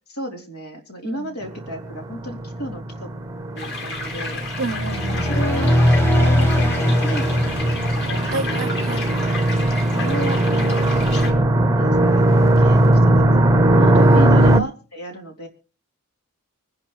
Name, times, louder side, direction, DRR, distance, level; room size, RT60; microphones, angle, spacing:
voice 1, 0.1-3.1 3.5-4.4 5.3-5.7 6.1-8.8 9.9-11.0 11.8-15.5, equal, 85° left, 3.5 m, -33 dB
sound 1, 1.4-14.6, right 1 dB, 15° right, 0.6 m, -19 dB
sound 2, 3.6-11.3, left 4 dB, 50° left, 3.2 m, -33 dB
voice 2, 4.6-5.2 8.3-9.0 13.9-14.5, right 3 dB, 55° right, 0.6 m, -29 dB
sound 3, 4.7-8.6, left 1 dB, 10° left, 1.2 m, -20 dB
24.5 x 11.0 x 3.1 m
head